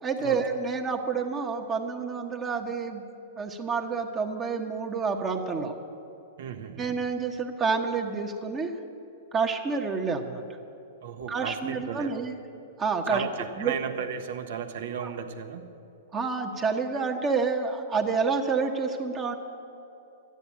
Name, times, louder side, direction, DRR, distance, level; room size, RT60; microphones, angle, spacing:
voice 1, 0.0-3.0 3.4-5.7 6.8-8.7 9.3-10.4 11.3-12.4 12.8-13.2 13.6-13.8 15.0-15.1 16.1-19.3, right 5 dB, 25° right, 3 dB, 1.2 m, -28 dB
voice 2, 6.4-6.9 11.0-12.2 13.1-15.7, right 7 dB, 65° right, 5 dB, 1.2 m, -35 dB
12.5 x 9.8 x 8.6 m, 2.8 s
hypercardioid pair, 110°, 0 cm